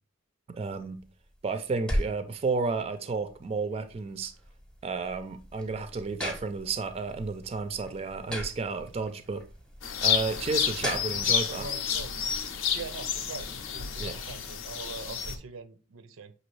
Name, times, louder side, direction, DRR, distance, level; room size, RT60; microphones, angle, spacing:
voice 1, 0.5-1.0 1.4-4.3 4.8-9.4 10.0-11.7 14.0-14.2, right 4 dB, 30° right, 0.4 m, -32 dB
sound 1, 0.7-11.4, equal, 5° left, 0.7 m, -39 dB
sound 2, 9.8-15.4, left 8 dB, 70° left, 0.6 m, -30 dB
voice 2, 11.4-12.1 12.7-16.3, right 5 dB, 90° right, 0.5 m, -43 dB
6.1 x 2.7 x 3.1 m
head